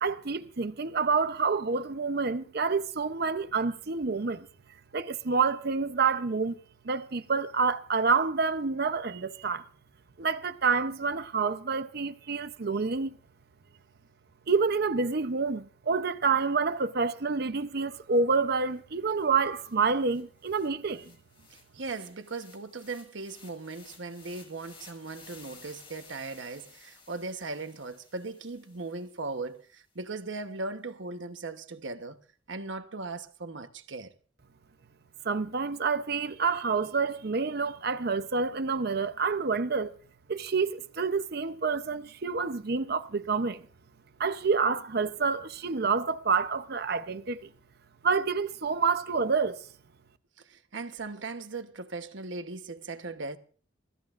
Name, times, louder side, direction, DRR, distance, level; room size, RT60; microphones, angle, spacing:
voice 1, 0.0-4.5 4.9-6.6 6.8-9.6 10.2-13.2 14.5-21.1 35.2-40.0 40.3-43.6 44.2-47.5 48.0-49.6, right 4 dB, 55° right, 0.7 m, -28 dB
sound 1, 18.8-18.9 19.1-29.5, left 4 dB, 30° left, 5.2 m, -55 dB
voice 2, 21.5-32.2 32.5-34.1 50.4-53.4, right 3 dB, 80° right, 1.1 m, -38 dB
25.5 x 15.0 x 2.5 m
head